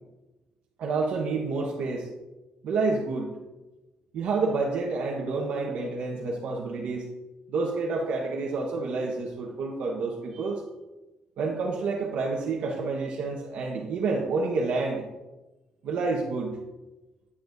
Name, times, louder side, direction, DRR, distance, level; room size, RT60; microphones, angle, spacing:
voice 1, 0.8-2.1 2.6-3.3 4.1-7.1 7.5-10.6 11.4-15.1 15.8-16.6, right 3 dB, 70° right, -2 dB, 1.2 m, -29 dB
9.8 x 9.6 x 2.6 m, 1.1 s
cardioid pair, 180°, 2 cm